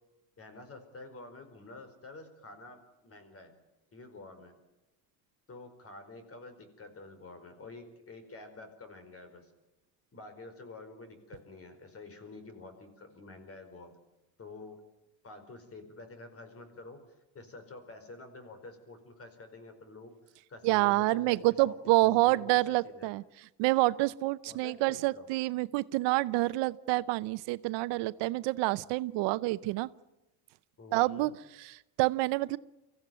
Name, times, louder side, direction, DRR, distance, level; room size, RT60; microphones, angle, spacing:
voice 1, 0.4-3.5 3.9-4.5 5.5-9.5 10.1-13.9 14.4-14.8 15.2-17.0 17.3-20.1 20.5-23.1 24.4-25.3 30.8-31.3, left 2 dB, 35° left, 9 dB, 4.8 m, -48 dB
voice 2, 20.6-23.2 23.6-29.9 30.9-31.3 31.6-32.6, right 19 dB, 75° right, 17 dB, 0.8 m, -28 dB
24.5 x 15.5 x 9.2 m, 0.98 s
cardioid pair, 120°, 42 cm